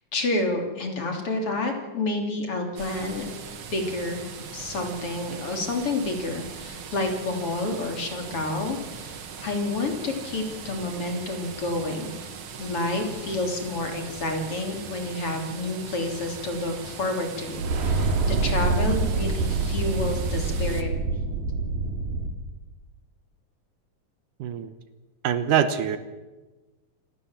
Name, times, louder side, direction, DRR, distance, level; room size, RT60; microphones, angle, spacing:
voice 1, 0.1-3.3 3.7-4.3 4.5-12.2 12.6-20.9, left 2 dB, 40° left, 4 dB, 3.9 m, -29 dB
sound 1, 2.8-20.8, right 6 dB, 45° right, 2.0 m, -40 dB
sound 2, 17.5-22.3, right 3 dB, 90° right, 4.3 m, -26 dB
voice 2, 24.4-24.7 25.2-26.0, right 9 dB, 75° right, 12 dB, 2.5 m, -24 dB
27.5 x 18.5 x 7.5 m, 1.2 s
omnidirectional pair, 3.9 m